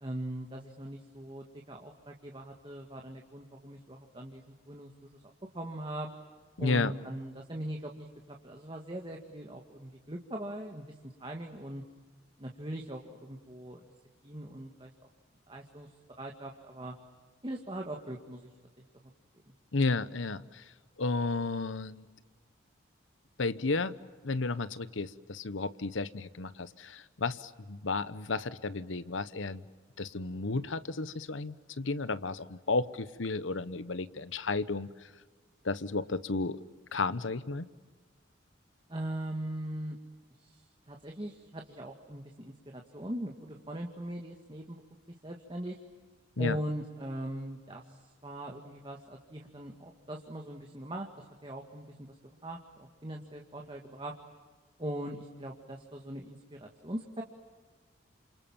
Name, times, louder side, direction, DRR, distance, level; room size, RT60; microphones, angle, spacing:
voice 1, 0.0-6.1 6.6-11.8 12.4-13.8 14.2-14.9 15.5-15.9 16.2-16.9 17.4-18.5 18.8-18.9 38.9-40.0 40.4-44.8 45.2-45.8 46.4-54.2 54.8-57.2, right 1 dB, 25° right, 2 dB, 1.9 m, -41 dB
voice 2, 6.6-6.9 19.7-20.7 21.0-22.1 23.4-23.9 24.2-29.6 30.0-34.9 35.6-36.6 36.9-37.7 46.4-46.6, left 3 dB, 75° left, 15 dB, 1.0 m, -32 dB
29.5 x 27.0 x 7.3 m, 1.4 s
head